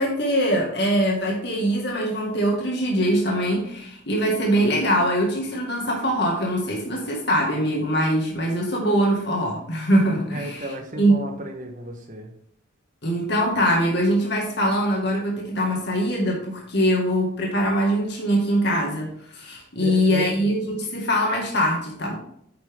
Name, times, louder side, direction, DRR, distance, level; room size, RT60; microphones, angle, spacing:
voice 1, 0.0-10.7 11.0-11.2 13.0-22.1, equal, 55° left, -2 dB, 2.1 m, -22 dB
voice 2, 10.3-12.3 19.8-20.5, right 1 dB, 40° right, 3 dB, 1.3 m, -34 dB
9.5 x 6.4 x 3.7 m, 0.69 s
head